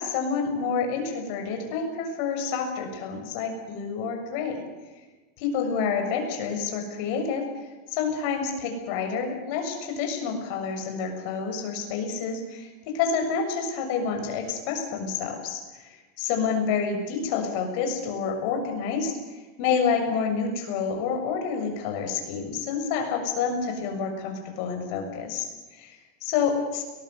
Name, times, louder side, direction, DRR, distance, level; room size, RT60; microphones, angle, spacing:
voice 1, 0.0-4.6 5.4-26.8, left 5 dB, 55° left, 4 dB, 6.7 m, -28 dB
22.5 x 20.5 x 8.2 m, 1.2 s
supercardioid pair, 155°, 0 cm